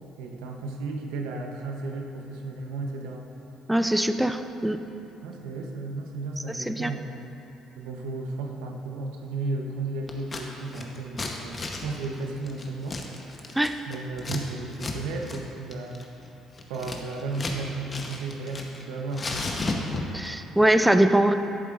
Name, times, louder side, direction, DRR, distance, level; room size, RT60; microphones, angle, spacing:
voice 1, 0.2-3.2 5.2-7.1 7.8-11.6 11.8-13.0 13.9-16.0 16.7-19.4, right 3 dB, 85° right, 2 dB, 0.8 m, -34 dB
voice 2, 3.7-4.8 6.7-6.9 13.6-13.7 20.1-21.3, right 1 dB, 5° right, 9 dB, 0.4 m, -22 dB
Scissors, 10.1-10.4 10.7-14.4 14.7-15.0 15.2-15.4 15.7-17.6 17.9-18.8 19.1-20.3, left 3 dB, 30° left, 0.9 m, -33 dB
11.0 x 8.1 x 2.5 m, 2.9 s
supercardioid pair, 75°, 0 cm